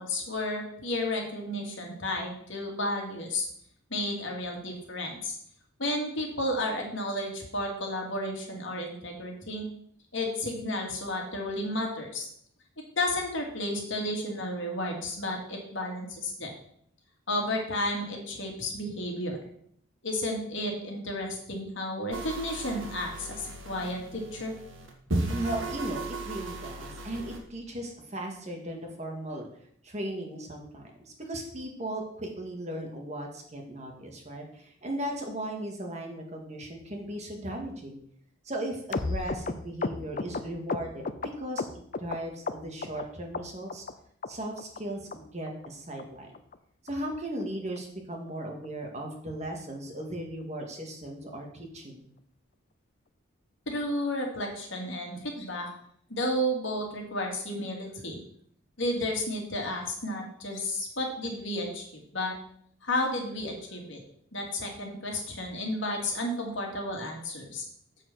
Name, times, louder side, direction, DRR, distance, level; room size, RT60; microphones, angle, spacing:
voice 1, 0.0-3.5 3.9-5.4 5.8-9.7 10.1-12.3 12.9-16.5 17.3-19.4 20.0-24.6 53.7-55.7 56.1-58.2 58.8-62.3 62.8-64.0 64.3-67.6, left 1 dB, 60° left, 1 dB, 2.4 m, -32 dB
sound 1, 22.1-27.4, right 2 dB, 70° right, 1.9 m, -36 dB
voice 2, 25.3-29.5 29.8-38.0 38.4-41.1 41.4-43.8 44.3-46.3 46.8-52.1, right 1 dB, 35° right, 2 dB, 1.9 m, -37 dB
sound 2, 38.9-42.2 42.5-43.0 43.3-43.9 44.2-44.3 44.6-44.8 45.1-45.2 45.5-45.7 46.0-46.1 46.3-46.6 46.9-47.0 47.2-47.4 47.8-47.9 48.1-48.3 48.6-48.7, left 3 dB, 40° left, 0.5 m, -33 dB
7.7 x 7.3 x 6.2 m, 0.67 s
head